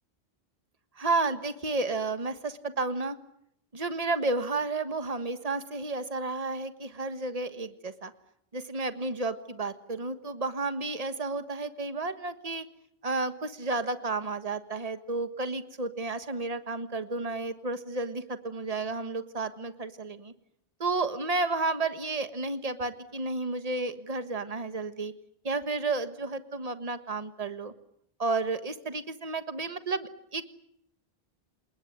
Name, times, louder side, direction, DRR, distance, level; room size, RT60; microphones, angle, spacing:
voice 1, 1.0-3.2 3.7-8.1 8.5-12.6 13.0-20.3 20.8-25.1 25.4-27.7 28.2-30.4, right 3 dB, 40° right, 10 dB, 1.5 m, -32 dB
28.5 x 20.0 x 9.4 m, 0.75 s
omnidirectional pair, 1.0 m